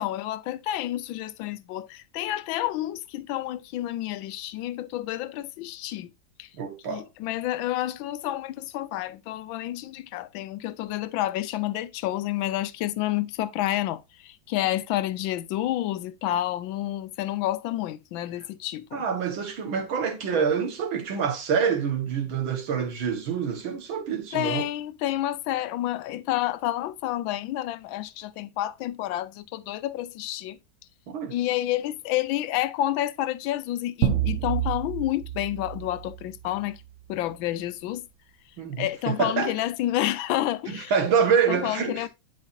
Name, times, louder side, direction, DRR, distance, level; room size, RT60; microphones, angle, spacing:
voice 1, 0.0-6.1 6.4-6.5 6.8-19.0 24.3-30.6 31.3-36.8 37.1-38.0 38.8-40.9 41.5-42.1, left 14 dB, 85° left, 1.4 m, -29 dB
voice 2, 6.6-7.1 18.9-24.6 31.1-31.3 38.6-39.5 40.7-42.1, right 6 dB, 85° right, 2.4 m, -26 dB
sound 1, 34.0-36.8, right 11 dB, 60° right, 0.8 m, -29 dB
10.5 x 4.8 x 2.6 m
omnidirectional pair, 2.1 m